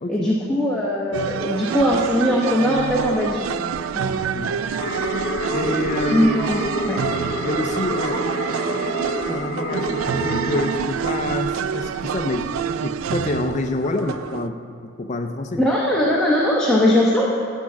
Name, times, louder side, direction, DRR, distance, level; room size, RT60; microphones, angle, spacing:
voice 1, 0.1-3.5 3.9-4.1 6.1-6.6 6.9-7.0 15.6-17.3, left 1 dB, 5° left, -5 dB, 0.9 m, -20 dB
sound 1, 1.1-14.5, right 7 dB, 80° right, 0.3 m, -27 dB
sound 2, 4.8-10.8, left 1 dB, 65° left, 1.1 m, -28 dB
voice 2, 5.5-6.3 7.4-8.2 9.3-15.7, left 2 dB, 35° left, 6 dB, 0.4 m, -27 dB
11.0 x 6.2 x 7.2 m, 2.4 s
head